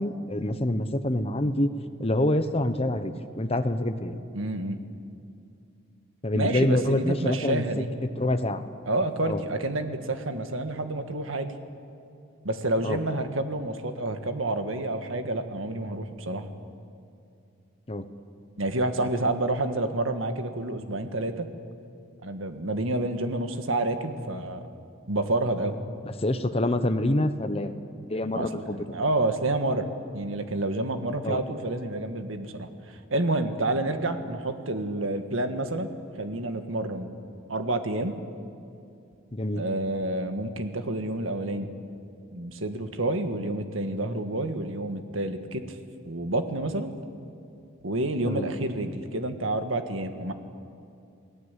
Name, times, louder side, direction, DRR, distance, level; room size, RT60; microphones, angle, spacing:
voice 1, 0.0-1.7 2.0-4.2 6.2-7.9 8.2-8.7 9.2-9.4 12.8-13.0 17.9-18.1 26.2-27.7 28.1-28.8 31.2-31.4 39.3-39.6 48.2-48.5, left 1 dB, 30° left, 9 dB, 1.1 m, -26 dB
voice 2, 4.3-4.8 6.3-7.9 8.9-11.5 12.4-16.5 18.6-21.5 22.2-24.6 25.1-25.8 28.3-29.9 30.1-35.9 36.2-37.1 37.5-38.1 39.5-41.7 42.3-45.8 46.0-46.9 47.8-50.3, right 2 dB, 80° right, 7 dB, 1.7 m, -29 dB
29.0 x 18.0 x 8.4 m, 2.5 s
head